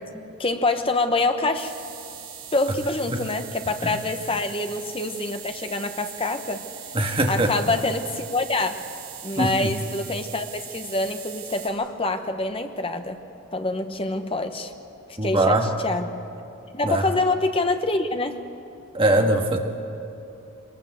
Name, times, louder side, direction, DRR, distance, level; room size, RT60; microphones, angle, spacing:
voice 1, 0.1-1.7 2.5-6.7 7.3-8.8 9.2-13.2 13.5-14.7 15.2-16.1 16.7-18.4, left 2 dB, 25° left, 7 dB, 1.1 m, -26 dB
sound 1, 1.5-11.7, right 9 dB, 70° right, 6.3 m, -40 dB
voice 2, 6.9-7.5 9.4-9.7 15.2-15.7 16.8-17.0 18.9-19.6, right 1 dB, 25° right, 3 dB, 1.7 m, -21 dB
23.5 x 19.5 x 7.9 m, 2.8 s
head